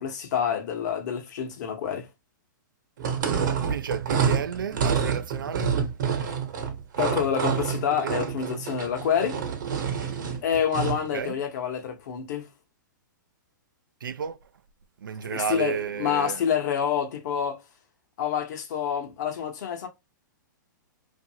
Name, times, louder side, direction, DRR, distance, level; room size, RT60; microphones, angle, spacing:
voice 1, 0.0-2.1 7.0-9.4 10.4-12.5 15.2-17.6 18.2-19.9, left 8 dB, 60° left, 0.9 m, -27 dB
sound 1, 3.0-11.1, right 7 dB, 65° right, 1.0 m, -27 dB
voice 2, 3.7-5.8 8.0-8.1 11.1-11.4 14.0-14.4 15.0-16.4, right 8 dB, 90° right, 0.4 m, -32 dB
2.6 x 2.6 x 2.7 m
hypercardioid pair, 130°, 11 cm